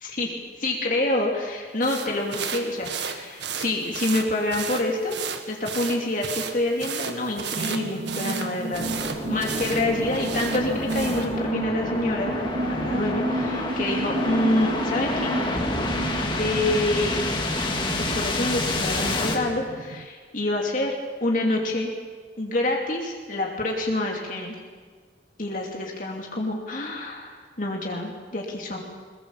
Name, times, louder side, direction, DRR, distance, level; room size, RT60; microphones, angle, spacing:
voice 1, 0.0-8.9 9.3-12.3 12.7-15.3 16.3-17.2 17.9-20.9 21.2-21.9 22.4-24.5 25.4-28.8, left 2 dB, 50° left, 0 dB, 2.9 m, -27 dB
sound 1, 1.8-11.3, right 7 dB, 85° right, 1.8 m, -34 dB
sound 2, 7.5-20.1, right 2 dB, 45° right, 0.6 m, -32 dB
sound 3, 8.7-19.4, left 2 dB, 25° left, 2.5 m, -28 dB
22.5 x 21.5 x 7.3 m, 1.5 s
head